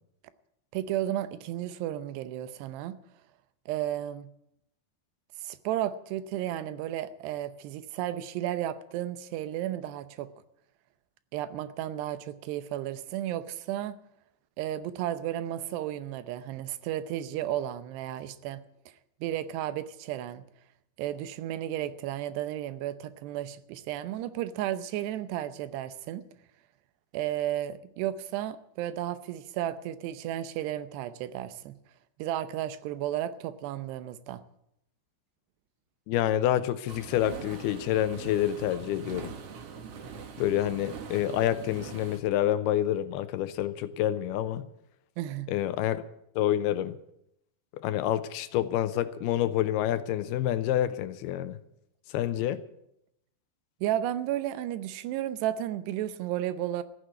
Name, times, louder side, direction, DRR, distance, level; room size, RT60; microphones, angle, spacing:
voice 1, 0.7-3.0 3.7-4.3 5.4-10.3 11.3-14.0 14.6-18.6 19.2-20.4 21.0-26.2 27.1-31.8 32.2-34.4 45.2-45.5 53.8-56.8, right 12 dB, 85° right, 3.0 m, -33 dB
voice 2, 36.1-39.3 40.4-44.7 45.5-46.0 46.4-47.0 47.7-51.6 52.1-52.6, left 12 dB, 80° left, 2.6 m, -28 dB
sound 1, 36.9-42.2, right 6 dB, 60° right, 1.6 m, -43 dB
14.5 x 9.9 x 9.3 m
omnidirectional pair, 4.8 m